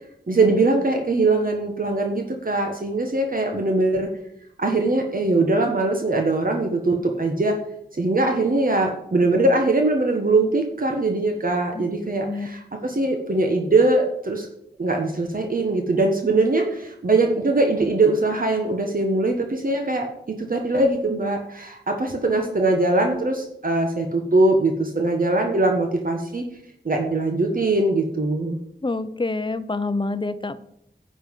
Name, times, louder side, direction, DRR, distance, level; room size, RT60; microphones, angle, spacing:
voice 1, 0.3-4.1 4.6-7.6 8.0-14.5 14.8-26.4 26.8-28.6, right 2 dB, 50° right, 3 dB, 1.3 m, -21 dB
voice 2, 12.3-12.6 28.8-30.6, left 3 dB, 25° left, 13 dB, 0.7 m, -27 dB
9.9 x 7.8 x 5.3 m, 0.76 s
wide cardioid pair, 75°, 18 cm